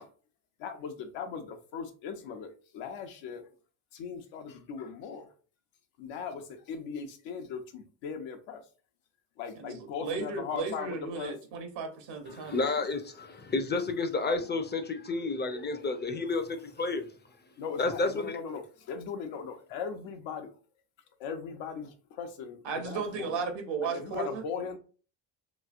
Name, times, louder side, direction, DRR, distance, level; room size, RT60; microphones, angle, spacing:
voice 1, 0.6-3.4 3.9-5.3 6.0-8.6 9.4-11.3 17.6-20.5 21.2-23.5 23.8-24.8, left 6 dB, 75° left, 0.8 m, -39 dB
voice 2, 10.0-12.7 22.6-24.4, right 5 dB, 70° right, 1.0 m, -35 dB
voice 3, 12.3-17.1 17.8-18.4, left 3 dB, 25° left, 0.5 m, -31 dB
3.1 x 2.7 x 2.4 m
supercardioid pair, 75°, 46 cm